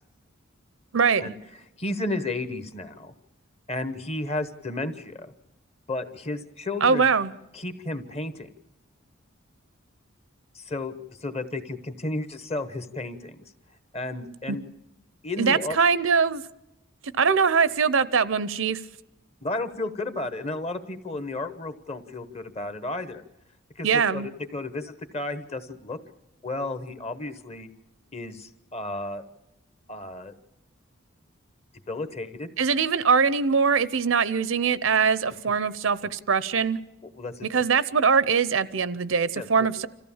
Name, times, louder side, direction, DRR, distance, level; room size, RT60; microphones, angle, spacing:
voice 1, 0.9-1.3 6.8-7.3 14.5-14.6 15.4-16.4 17.2-18.8 23.8-24.3 32.6-36.8 37.5-39.9, right 5 dB, 70° right, 16 dB, 0.7 m, -22 dB
voice 2, 1.8-3.1 3.7-5.3 5.9-7.1 7.5-8.5 10.5-13.4 13.9-14.6 15.2-15.8 19.4-23.2 23.8-26.0 26.4-27.7 28.1-29.2 29.9-30.3 31.9-32.5 37.1-37.5 39.3-39.7, left 2 dB, 30° left, 10 dB, 1.1 m, -33 dB
26.0 x 15.0 x 7.2 m, 0.91 s
head